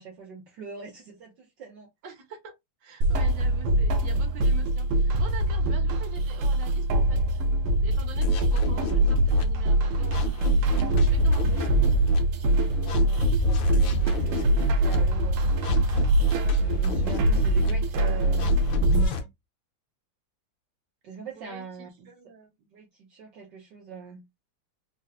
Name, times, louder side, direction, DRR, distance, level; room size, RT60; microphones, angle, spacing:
voice 1, 0.0-1.9 13.0-15.5 16.2-18.6 21.0-22.1 22.7-24.2, right 5 dB, 60° right, 1.5 m, -43 dB
voice 2, 2.0-2.5 2.8-7.4 7.8-11.7 21.3-22.5, right 4 dB, 40° right, 1.5 m, -45 dB
sound 1, 3.0-19.1, right 1 dB, 85° right, 1.7 m, -24 dB
sound 2, 8.2-9.4 9.9-12.2 12.7-15.0 15.4-17.7 18.2-19.2, equal, 70° left, 1.6 m, -26 dB
4.3 x 2.6 x 2.4 m
omnidirectional pair, 2.3 m